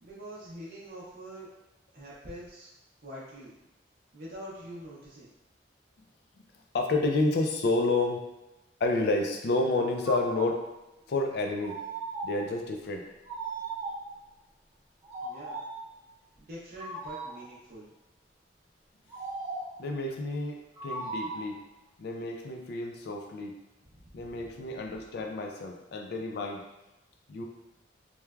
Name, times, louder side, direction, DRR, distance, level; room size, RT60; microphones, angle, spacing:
voice 1, 0.0-1.5 1.9-2.7 3.0-3.5 4.1-5.3 15.2-15.6 16.4-17.9 23.9-24.5, right 1 dB, 55° right, -7 dB, 0.6 m, -45 dB
voice 2, 6.7-8.3 8.8-10.6 11.1-11.7 12.2-13.0 19.8-20.6 20.8-21.6 22.0-23.5 24.1-26.6 27.3-27.4, left 2 dB, 60° left, 2 dB, 0.4 m, -29 dB
sound 1, 9.8-10.6 11.6-12.5 13.2-14.2 15.0-15.9 16.8-17.5 19.1-19.8 20.7-21.5, right 2 dB, 15° right, 0.7 m, -37 dB
3.1 x 2.2 x 2.3 m, 0.95 s
head